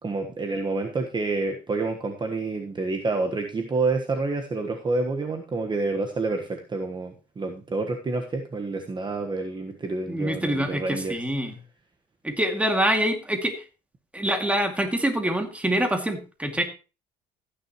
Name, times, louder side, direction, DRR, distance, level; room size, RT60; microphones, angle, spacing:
voice 1, 0.0-11.2, right 3 dB, 25° right, 4 dB, 1.4 m, -28 dB
voice 2, 10.1-11.5 12.2-13.6 14.1-16.6, right 1 dB, 10° right, 4 dB, 2.4 m, -25 dB
15.0 x 9.9 x 3.1 m, 0.32 s
cardioid pair, 110°, 17 cm